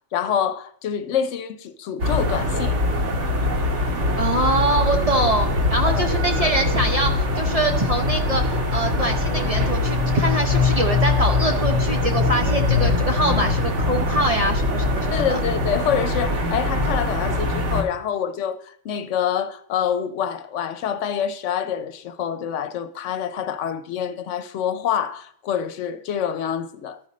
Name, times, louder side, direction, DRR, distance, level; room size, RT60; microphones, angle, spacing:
voice 1, 0.1-2.8 5.8-6.1 15.1-27.0, left 8 dB, 75° left, 0.9 m, -26 dB
sound 1, 2.0-17.8, left 2 dB, 70° right, 1.6 m, -22 dB
voice 2, 4.2-15.4, right 1 dB, 40° right, 0.6 m, -24 dB
13.0 x 5.1 x 4.1 m
omnidirectional pair, 1.3 m